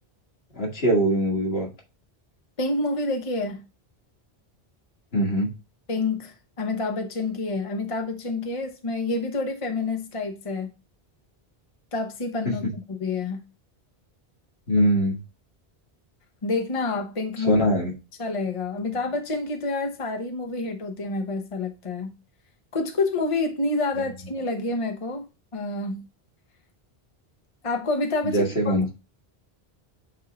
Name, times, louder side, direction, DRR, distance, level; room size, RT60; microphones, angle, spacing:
voice 1, 0.5-1.7 5.1-5.5 14.7-15.2 17.4-17.9 28.3-28.9, equal, 70° left, 2.3 m, -22 dB
voice 2, 2.6-3.7 5.9-10.7 11.9-12.6 12.9-13.4 16.4-17.6 18.2-22.1 22.7-26.1 27.6-28.7, left 3 dB, 35° left, 1.0 m, -28 dB
8.8 x 3.7 x 3.9 m
omnidirectional pair, 1.1 m